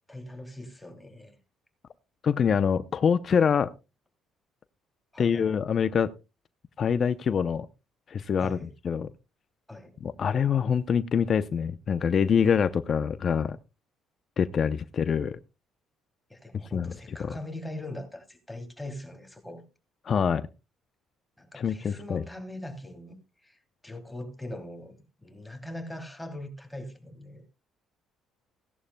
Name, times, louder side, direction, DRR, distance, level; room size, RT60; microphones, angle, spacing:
voice 1, 0.1-1.4 5.1-5.5 8.4-8.7 9.7-9.9 16.3-19.6 21.4-27.4, left 1 dB, 5° left, 2.9 m, -41 dB
voice 2, 2.2-3.7 5.2-6.1 6.8-7.7 8.1-8.6 8.8-9.1 10.0-13.6 14.4-15.4 16.7-16.9 17.2-17.3 20.1-20.4 21.6-22.2, left 7 dB, 45° left, 0.6 m, -25 dB
17.0 x 11.0 x 2.2 m
cardioid pair, 85°, 0 cm